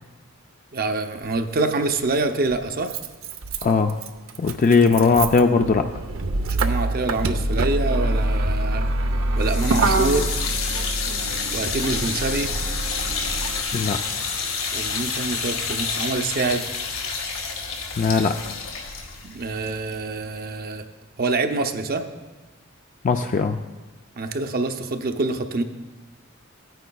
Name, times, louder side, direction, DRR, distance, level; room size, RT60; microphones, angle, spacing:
voice 1, 0.7-2.9 6.5-8.9 9.4-10.3 11.5-12.5 14.7-16.7 19.2-20.8 21.2-22.0 24.2-25.6, right 3 dB, 50° right, 6 dB, 0.6 m, -26 dB
Motor vehicle (road), 1.2-1.3 2.5-13.6, right 2 dB, 85° right, 0.7 m, -25 dB
voice 2, 3.6-4.0 4.4-5.9 13.7-14.0 18.0-18.5 23.0-23.6, left 4 dB, 40° left, 6 dB, 0.3 m, -19 dB
sound 1, 9.4-20.5, left 5 dB, 85° left, 1.7 m, -29 dB
16.5 x 9.2 x 2.3 m, 1.2 s
head